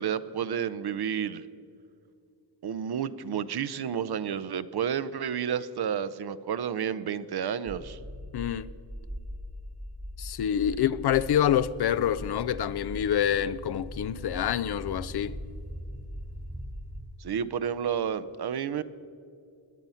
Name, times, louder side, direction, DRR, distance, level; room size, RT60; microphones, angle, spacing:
voice 1, 0.0-1.4 2.6-8.0 17.2-18.8, right 8 dB, 60° right, 0.7 m, -31 dB
sound 1, 7.7-17.0, equal, 20° right, 1.3 m, -40 dB
voice 2, 8.3-8.7 10.2-15.3, left 10 dB, 60° left, 0.6 m, -27 dB
18.5 x 10.5 x 5.6 m
cardioid pair, 65°, 44 cm